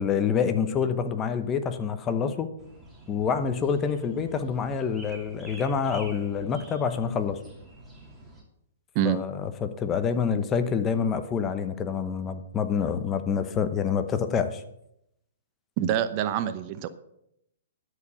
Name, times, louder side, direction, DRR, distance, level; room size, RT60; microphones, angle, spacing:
voice 1, 0.0-2.5 3.1-7.4 9.0-14.6, left 6 dB, 20° left, 10 dB, 0.9 m, -27 dB
sound 1, 2.6-8.4, right 1 dB, 5° right, 2.8 m, -48 dB
voice 2, 15.8-16.9, right 9 dB, 40° right, 11 dB, 0.7 m, -26 dB
13.0 x 4.9 x 6.9 m, 0.79 s
hypercardioid pair, 130°, 0 cm